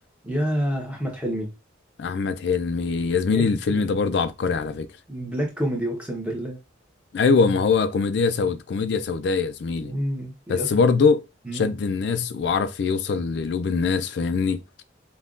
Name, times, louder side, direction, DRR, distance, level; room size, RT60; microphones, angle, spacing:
voice 1, 0.2-1.5 3.2-3.8 5.1-6.6 9.8-10.7 11.5-11.7, equal, 5° right, 0.9 m, -28 dB
voice 2, 2.0-4.9 7.1-9.9 10.5-11.2 11.5-14.6, left 5 dB, 65° left, 0.3 m, -23 dB
5.4 x 2.2 x 2.5 m
head